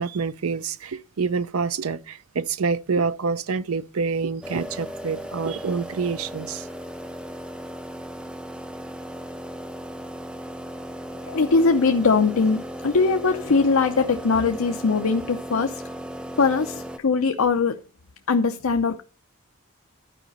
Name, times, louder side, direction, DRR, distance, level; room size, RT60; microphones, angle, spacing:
voice 1, 0.0-6.7, right 5 dB, 85° right, 0.6 m, -27 dB
sound 1, 4.4-17.0, equal, 5° right, 0.5 m, -36 dB
voice 2, 11.2-15.8 16.4-17.8 18.3-19.0, left 4 dB, 75° left, 0.7 m, -21 dB
12.5 x 5.0 x 5.3 m
head